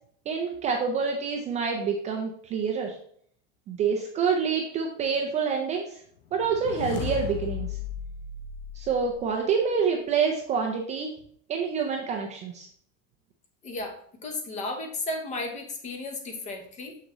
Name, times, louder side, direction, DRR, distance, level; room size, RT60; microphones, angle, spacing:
voice 1, 0.3-3.0 3.7-6.0 6.3-7.8 8.7-11.1 11.5-12.7, right 6 dB, 20° right, 1 dB, 0.5 m, -27 dB
sound 1, 6.3-9.6, left 9 dB, 60° left, 0.7 m, -36 dB
voice 2, 13.6-17.0, left 2 dB, 20° left, 5 dB, 0.8 m, -34 dB
6.5 x 6.2 x 3.0 m, 0.62 s
supercardioid pair, 165°, 35 cm